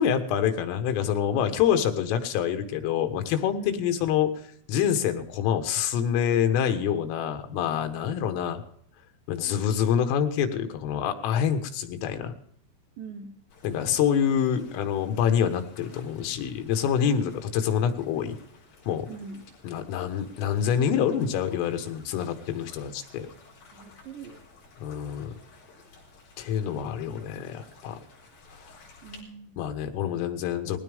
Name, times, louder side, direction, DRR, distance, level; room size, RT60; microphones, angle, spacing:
voice 1, 0.0-4.3 4.7-8.6 9.3-12.3 13.6-18.4 18.9-19.1 19.6-23.3 24.8-25.3 26.4-28.0 29.6-30.8, left 8 dB, 90° left, 7 dB, 4.0 m, -26 dB
voice 2, 3.6-3.9 13.0-13.4 19.1-19.4 23.7-24.4 29.0-29.5, right 4 dB, 75° right, 4 dB, 2.0 m, -42 dB
sound 1, 13.5-29.2, left 4 dB, 50° left, 5.8 m, -54 dB
20.5 x 16.5 x 3.6 m, 0.66 s
omnidirectional pair, 5.7 m